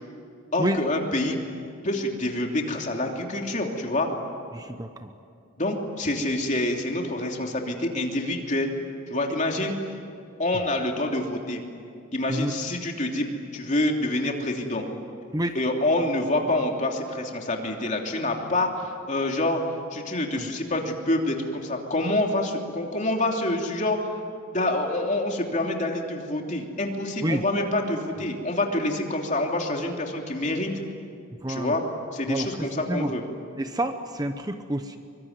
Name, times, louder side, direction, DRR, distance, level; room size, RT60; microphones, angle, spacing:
voice 1, 0.5-1.4 1.8-4.1 5.6-8.7 9.1-9.7 10.4-11.6 12.1-14.8 15.5-19.6 19.9-24.1 24.5-30.7 31.5-31.8 32.1-33.2, left 1 dB, 35° left, 2 dB, 3.1 m, -27 dB
voice 2, 4.5-5.1 12.3-12.5 15.3-15.6 20.4-20.5 27.2-27.4 31.4-31.8 32.3-33.1 33.6-35.0, right 1 dB, 20° right, 7 dB, 1.0 m, -29 dB
24.0 x 23.5 x 9.6 m, 2.4 s
head